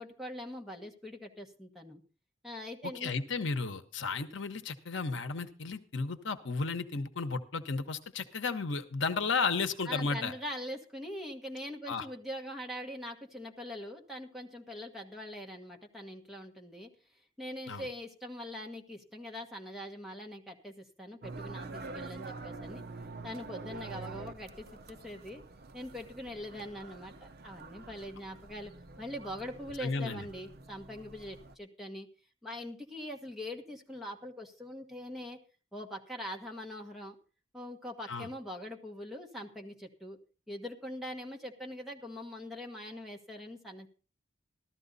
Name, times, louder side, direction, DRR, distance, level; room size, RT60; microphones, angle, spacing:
voice 1, 0.0-2.0 2.4-3.1 9.8-16.9 17.4-22.8 23.2-25.4 25.7-32.1 32.4-35.4 35.7-37.2 37.5-40.2 40.5-43.9, left 1 dB, ahead, 0 dB, 1.4 m, -43 dB
voice 2, 3.0-10.3 11.9-12.1 17.7-17.9 29.8-30.2 38.1-38.3, left 4 dB, 65° left, 9 dB, 1.0 m, -33 dB
sound 1, 21.2-31.6, right 3 dB, 50° right, 0.7 m, -46 dB
14.5 x 13.0 x 4.0 m, 0.36 s
head